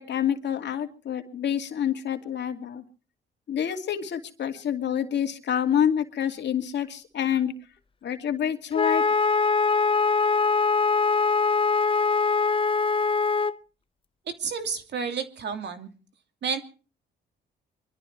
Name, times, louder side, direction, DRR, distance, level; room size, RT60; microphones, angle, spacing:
voice 1, 0.0-2.8 3.5-7.5 8.0-9.0, left 9 dB, 60° left, 5 dB, 2.6 m, -27 dB
Wind instrument woodwind instrument, 8.7-13.5, left 4 dB, 25° left, 0.8 m, -22 dB
voice 2, 14.4-15.9 16.4-16.6, right 6 dB, 60° right, 7 dB, 2.8 m, -30 dB
24.0 x 13.0 x 4.6 m, 0.37 s
cardioid pair, 90°, 20 cm